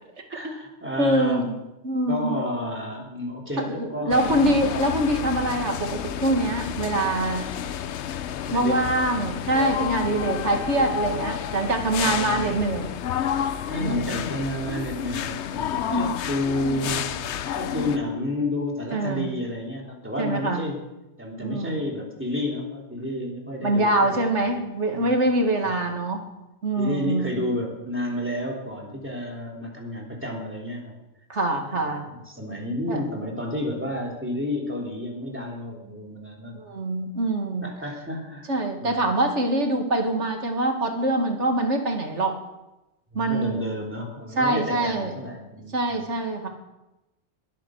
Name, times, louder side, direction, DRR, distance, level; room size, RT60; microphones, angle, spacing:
voice 1, 0.3-1.4 2.1-4.5 8.4-9.0 9.3-9.7 12.0-12.6 13.7-17.1 17.5-20.8 21.2-24.5 24.9-25.1 25.6-25.7 26.8-31.0 31.7-36.6 37.6-38.5 38.8-39.1 43.1-46.1, left 1 dB, 10° right, -1 dB, 3.3 m, -31 dB
voice 2, 1.0-1.5 1.8-2.4 3.6-7.5 8.5-12.9 13.8-14.2 15.9-16.1 18.9-19.3 20.2-20.6 21.4-21.8 23.6-26.2 26.6-27.3 31.3-32.0 32.9-33.0 36.5-37.7 38.5-42.4 43.1-43.6 44.4-45.1 45.7-46.5, right 1 dB, 85° right, 3 dB, 2.4 m, -24 dB
sound 1, 4.1-18.0, left 9 dB, 75° left, 1.0 m, -30 dB
21.5 x 8.6 x 6.4 m, 0.98 s
omnidirectional pair, 1.2 m